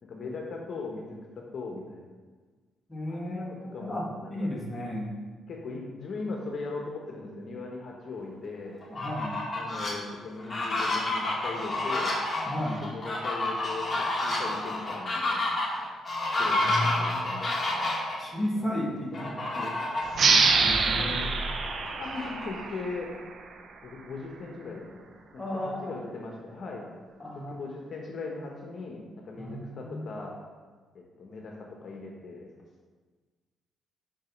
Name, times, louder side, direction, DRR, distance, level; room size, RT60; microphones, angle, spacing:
voice 1, 0.0-1.2 1.5-2.1 3.1-4.5 5.5-8.8 9.5-12.1 12.8-15.4 16.4-17.7 18.3-18.9 20.8-21.0 22.0-23.1 23.8-26.9 27.3-30.3 31.2-31.6 31.8-32.5, left 3 dB, 50° left, 0 dB, 1.1 m, -39 dB
voice 2, 2.9-5.1 8.9-9.4 12.4-12.9 16.6-17.3 18.2-19.7 20.3-21.3 25.4-25.9 27.2-27.5 29.4-30.1, left 1 dB, 10° left, -3 dB, 1.6 m, -34 dB
Fowl, 8.8-9.9 10.4-18.2 19.1-20.2 20.6-20.7 21.1-22.8, left 2 dB, 25° left, 1.8 m, -30 dB
sound 1, 20.1-23.4, right 4 dB, 55° right, 0.6 m, -25 dB
5.3 x 5.2 x 5.2 m, 1.4 s
cardioid pair, 90°, 0 cm